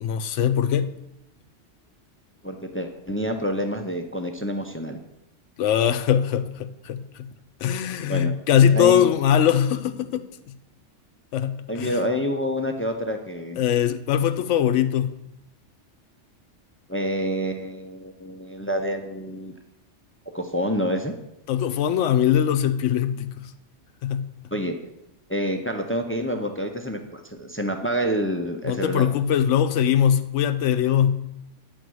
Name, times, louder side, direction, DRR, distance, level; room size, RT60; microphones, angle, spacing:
voice 1, 0.0-0.9 5.6-7.3 7.6-10.2 11.3-12.0 13.6-15.1 21.5-23.3 24.0-24.3 28.6-31.3, left 9 dB, 75° left, 11 dB, 0.9 m, -21 dB
voice 2, 2.4-5.0 8.1-8.3 8.7-9.1 11.7-13.6 16.9-19.5 20.3-21.1 24.5-24.8 25.3-29.2, equal, 20° left, 5 dB, 0.4 m, -27 dB
9.4 x 4.2 x 6.2 m, 0.83 s
omnidirectional pair, 1.3 m